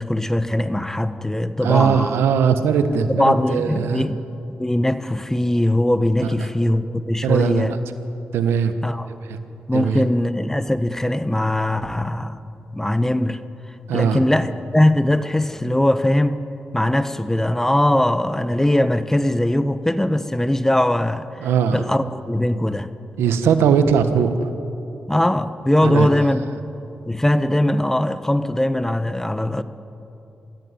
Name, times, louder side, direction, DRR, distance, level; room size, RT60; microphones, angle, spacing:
voice 1, 0.0-2.2 3.0-4.2 4.6-7.7 8.8-9.1 9.7-12.4 12.7-13.4 13.7-16.4 16.7-22.9 25.1-26.4 27.1-29.6, left 1 dB, 10° left, 11 dB, 1.3 m, -20 dB
voice 2, 1.6-4.0 6.2-6.3 7.2-7.7 8.3-8.7 9.7-10.0 13.9-14.2 21.4-21.8 23.2-24.3 25.8-26.1, right 7 dB, 85° right, 9 dB, 1.3 m, -19 dB
25.0 x 16.0 x 9.7 m, 2.9 s
supercardioid pair, 50°, 4 cm